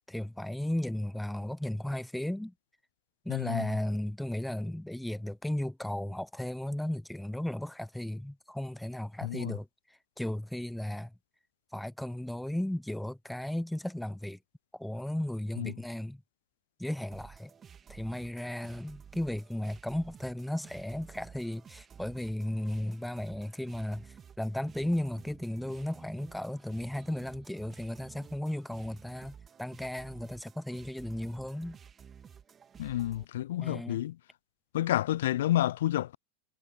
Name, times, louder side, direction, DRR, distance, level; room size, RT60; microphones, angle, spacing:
voice 1, 0.1-2.5 3.2-9.7 10.2-11.1 11.7-14.4 14.7-16.2 16.8-17.5 17.9-31.8 33.6-34.0, left 1 dB, ahead, 0.8 m, -35 dB
voice 2, 3.3-3.6 9.2-9.5 15.6-15.7 32.8-34.1 34.7-36.2, left 13 dB, 55° left, 0.5 m, -29 dB
sound 1, 17.1-33.2, right 7 dB, 20° right, 2.8 m, -53 dB
figure-of-eight pair, 90°, 0 cm